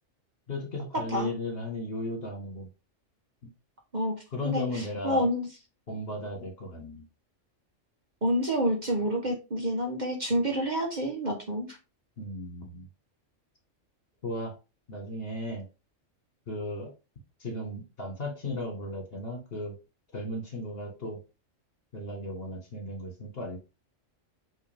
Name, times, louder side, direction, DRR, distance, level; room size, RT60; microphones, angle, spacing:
voice 1, 0.5-2.7 4.3-5.3 5.9-7.0 12.2-12.9 14.2-14.5 14.9-15.7 16.5-16.9 17.4-19.8 20.1-21.2 21.9-23.6, left 1 dB, 50° left, 2 dB, 1.8 m, -35 dB
voice 2, 4.4-5.5 8.2-11.8, equal, 35° right, 1 dB, 1.3 m, -28 dB
8.1 x 3.3 x 3.5 m, 0.30 s
omnidirectional pair, 1.3 m